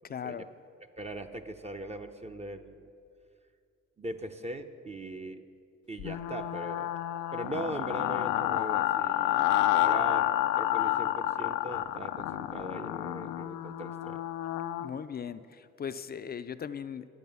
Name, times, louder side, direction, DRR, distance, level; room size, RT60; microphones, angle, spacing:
voice 1, 0.0-0.5 14.8-17.1, left 7 dB, 35° left, 13 dB, 0.4 m, -38 dB
voice 2, 1.0-2.8 4.0-5.4 5.9-6.9 7.3-10.3 10.5-14.2, right 1 dB, 20° right, 5 dB, 0.6 m, -40 dB
sound 1, 6.0-14.9, left 13 dB, 90° left, 0.5 m, -29 dB
11.0 x 8.3 x 6.8 m, 2.4 s
cardioid pair, 90°, 30 cm